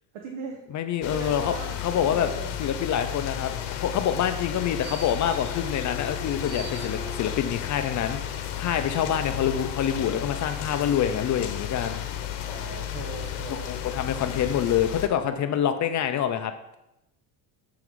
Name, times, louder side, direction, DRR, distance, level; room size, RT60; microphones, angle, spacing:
voice 1, 0.1-0.6 1.1-2.6 12.4-13.8, right 5 dB, 70° right, 2 dB, 1.0 m, -38 dB
voice 2, 0.7-1.5 1.8-2.3 2.6-12.0 13.5-16.5, left 9 dB, 40° left, 9 dB, 0.4 m, -26 dB
sound 1, 1.0-15.1, left 11 dB, 85° left, 0.9 m, -33 dB
Bowed string instrument, 3.6-7.4, right 1 dB, 10° left, 1.8 m, -43 dB
sound 2, 4.5-6.1 6.4-7.4 8.0-10.6 11.1-11.2, right 4 dB, 40° right, 2.4 m, -47 dB
6.9 x 3.8 x 4.6 m, 0.88 s
cardioid pair, 115°, 49 cm